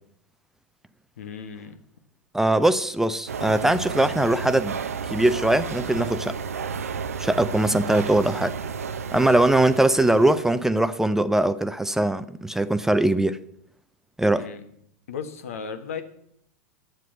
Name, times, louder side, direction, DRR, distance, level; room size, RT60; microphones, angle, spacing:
voice 1, 1.2-1.8 14.4-14.7 15.1-16.0, left 6 dB, 80° left, 1.3 m, -35 dB
voice 2, 2.3-4.7 5.0-6.4 7.2-8.5 9.1-13.4 14.2-14.5, right 1 dB, 5° right, 0.5 m, -21 dB
sound 1, 3.3-10.7, right 6 dB, 90° right, 0.7 m, -32 dB
9.2 x 7.6 x 7.6 m
hypercardioid pair, 100°, 8 cm